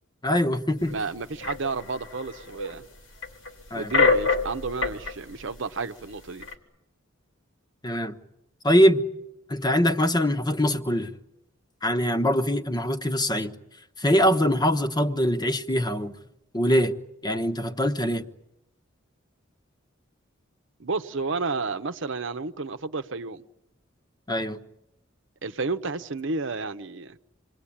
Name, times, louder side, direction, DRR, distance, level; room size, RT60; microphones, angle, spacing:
voice 1, 0.2-1.0 3.7-3.9 7.8-8.2 8.6-9.0 9.5-11.1 11.8-13.5 14.0-16.1 16.5-16.9 17.2-18.2 24.3-24.6, equal, 20° left, 1.2 m, -23 dB
sound 1, 0.9-1.0 1.4-2.7 3.2-5.1 5.5-5.6 6.0-6.5, left 4 dB, 85° left, 3.6 m, -25 dB
voice 2, 0.9-2.8 3.8-6.5 20.8-23.4 25.4-27.2, right 4 dB, 65° right, 0.9 m, -31 dB
27.5 x 21.0 x 8.7 m
head